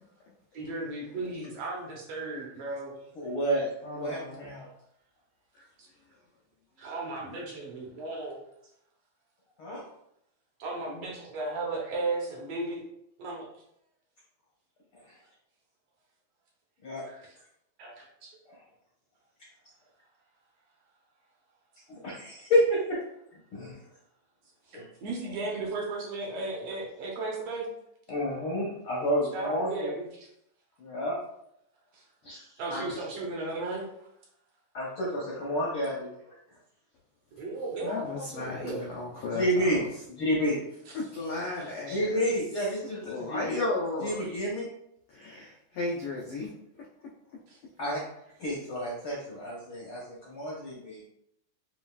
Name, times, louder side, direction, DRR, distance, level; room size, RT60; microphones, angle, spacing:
voice 1, 0.5-3.0 6.8-8.4 10.6-12.8 13.2-13.5 17.0-17.3 17.8-18.3 24.7-27.7 29.3-30.3 32.6-33.9 37.3-38.8 41.3-42.0 47.5-47.9, right 2 dB, 70° right, -2 dB, 1.6 m, -35 dB
voice 2, 3.2-3.7 3.9-4.7 9.6-9.8 16.8-17.0 21.9-23.0 23.5-23.7 24.7-24.9 28.1-29.9 30.8-31.2 32.2-32.4 32.7-32.8 34.7-36.1 39.3-39.8 40.2-40.6 41.9-43.6 44.0-44.7 47.8-48.0 48.4-51.0, equal, 65° left, -5 dB, 1.3 m, -29 dB
voice 3, 3.8-4.6 5.5-5.7 37.8-39.9 40.9-42.4 43.0-44.3 45.1-46.5, left 2 dB, 85° left, -4 dB, 1.2 m, -34 dB
7.1 x 2.4 x 2.3 m, 0.75 s
omnidirectional pair, 3.4 m